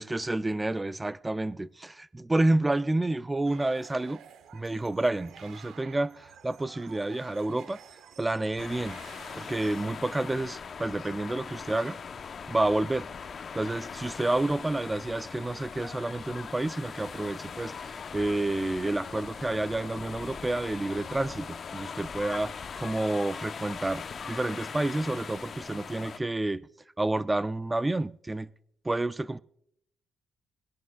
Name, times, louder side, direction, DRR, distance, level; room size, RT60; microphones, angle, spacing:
voice 1, 0.0-4.2 4.5-7.8 8.2-9.0 9.4-12.0 12.5-13.1 13.5-26.7 27.0-28.5 28.8-29.4, right 2 dB, 15° right, 0.4 m, -29 dB
sound 1, 3.4-9.9, right 8 dB, 75° right, 0.9 m, -51 dB
sound 2, 8.6-26.2, left 6 dB, 50° left, 0.8 m, -40 dB
23.0 x 11.0 x 2.3 m
cardioid pair, 90°, 0 cm